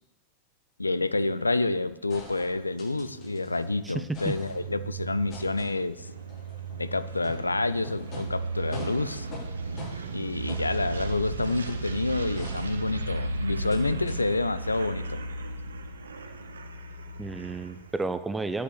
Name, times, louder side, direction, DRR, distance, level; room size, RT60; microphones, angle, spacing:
voice 1, 0.8-6.1 6.8-9.3 10.1-15.2, left 2 dB, 80° left, 14 dB, 0.5 m, -28 dB
sound 1, 2.1-3.6 3.9-4.9 5.3-11.8 12.4-13.2 13.7-13.8 14.1-14.2, left 2 dB, 40° left, 5.3 m, -45 dB
sound 2, 2.4-18.0, right 3 dB, 70° right, 0.9 m, -36 dB
voice 2, 3.8-4.3 17.2-18.6, right 3 dB, 10° right, 11 dB, 0.6 m, -32 dB
9.9 x 7.9 x 6.7 m, 0.92 s
figure-of-eight pair, 90°, 0 cm